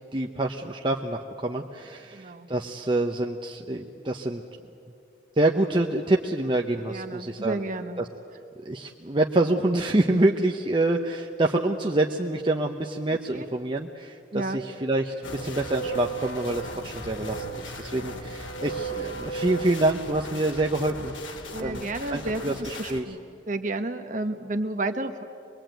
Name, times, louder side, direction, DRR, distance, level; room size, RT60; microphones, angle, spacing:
voice 1, 0.1-4.4 5.4-7.6 8.0-8.1 8.6-14.2 14.5-21.2 21.6-23.0, right 2 dB, 25° right, 2 dB, 0.8 m, -26 dB
voice 2, 2.1-2.5 6.9-8.1 13.1-13.5 14.3-14.6 21.5-23.2 23.5-25.2, right 2 dB, 40° right, 7 dB, 1.2 m, -31 dB
sound 1, 15.2-23.0, right 2 dB, 85° left, 2.2 m, -36 dB
24.5 x 21.5 x 9.1 m, 2.5 s
head